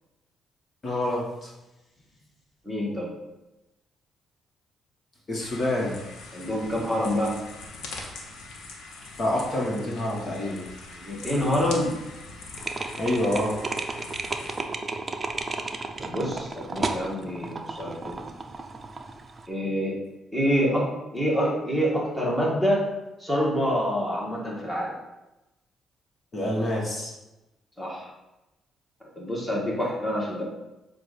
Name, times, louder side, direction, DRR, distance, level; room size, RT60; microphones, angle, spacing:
voice 1, 0.8-1.5 5.3-5.9 9.2-10.7 13.0-13.6 26.3-27.1, left 1 dB, 40° left, -3 dB, 1.6 m, -27 dB
voice 2, 2.6-3.1 6.3-7.4 10.9-12.0 14.4-14.7 16.0-18.3 19.5-20.0 20.3-22.9 23.2-24.9 27.8-28.1 29.1-30.4, equal, 5° left, -4 dB, 1.7 m, -27 dB
sound 1, 5.4-14.6, left 3 dB, 85° left, 1.1 m, -42 dB
sound 2, 12.6-19.5, right 3 dB, 30° right, 0.6 m, -33 dB
7.6 x 2.6 x 5.3 m, 1.0 s
cardioid pair, 90°, 0 cm